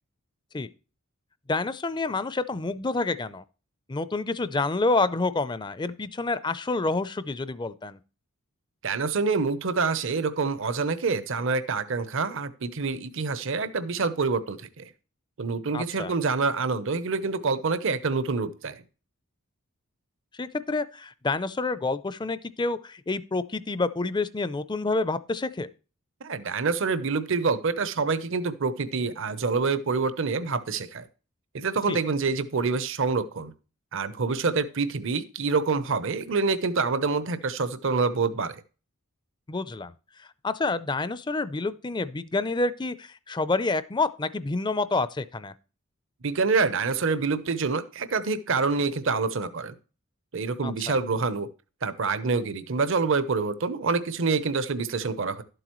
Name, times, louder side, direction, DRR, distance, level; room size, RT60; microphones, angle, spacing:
voice 1, 1.5-3.4 3.9-8.0 15.7-16.1 20.4-25.7 31.9-32.0 39.5-39.9 40.4-45.5 50.6-51.0, left 3 dB, 20° left, 0.5 m, -28 dB
voice 2, 8.8-14.9 15.4-18.8 26.2-31.1 31.5-33.5 33.9-38.6 46.2-49.7 50.3-51.5 51.8-55.4, right 4 dB, 65° right, 0.8 m, -26 dB
12.0 x 7.9 x 3.1 m
head